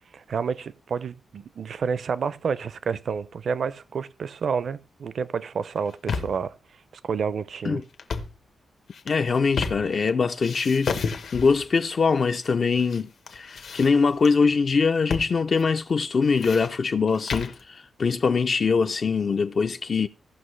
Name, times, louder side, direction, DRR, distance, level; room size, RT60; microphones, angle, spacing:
voice 1, 0.1-6.5 7.0-7.8, right 6 dB, 55° right, 0.5 m, -29 dB
sound 1, 5.7-6.5 7.9-8.4 8.9-10.1 10.4-11.7 12.4-13.0 13.3-14.3 15.1-15.3 15.6-15.7 16.1-17.6, left 5 dB, 70° left, 1.0 m, -32 dB
voice 2, 9.1-11.0 11.3-20.1, left 5 dB, 45° left, 0.4 m, -23 dB
16.0 x 6.0 x 3.2 m
wide cardioid pair, 145°, 0 cm